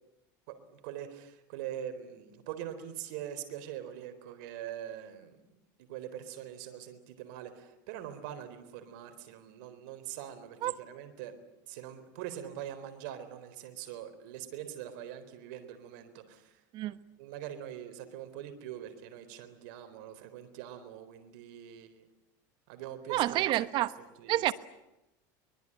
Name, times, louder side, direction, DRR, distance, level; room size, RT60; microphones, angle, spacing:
voice 1, 0.5-5.4 5.8-11.3 11.7-16.6 17.2-22.1 22.7-23.5 23.8-24.5, right 10 dB, 75° right, 9 dB, 4.0 m, -43 dB
voice 2, 23.1-23.9 24.3-24.5, right 15 dB, 50° right, 15 dB, 1.1 m, -28 dB
24.0 x 22.0 x 10.0 m, 0.91 s
supercardioid pair, 120°, 10 cm